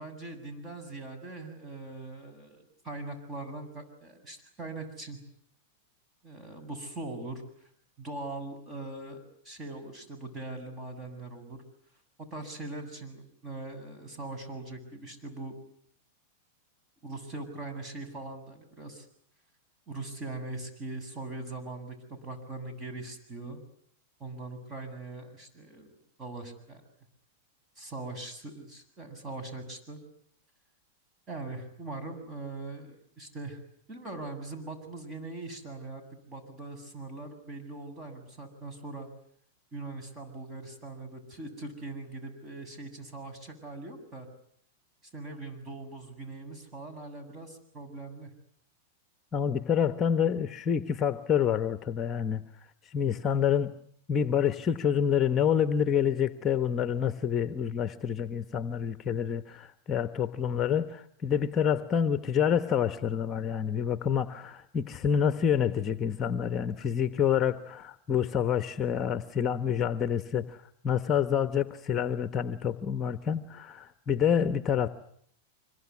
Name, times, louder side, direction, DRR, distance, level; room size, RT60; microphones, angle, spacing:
voice 1, 0.0-5.2 6.2-7.7 8.0-11.6 12.3-15.5 17.0-19.1 19.9-23.6 24.2-26.8 27.8-30.0 31.3-33.6 33.9-39.1 39.7-44.3 45.1-48.3, right 2 dB, 25° right, 7.9 m, -41 dB
voice 2, 49.3-52.4 52.8-53.7 54.1-74.9, left 8 dB, 25° left, 1.2 m, -28 dB
26.0 x 23.0 x 9.7 m
hypercardioid pair, 130°, 0 cm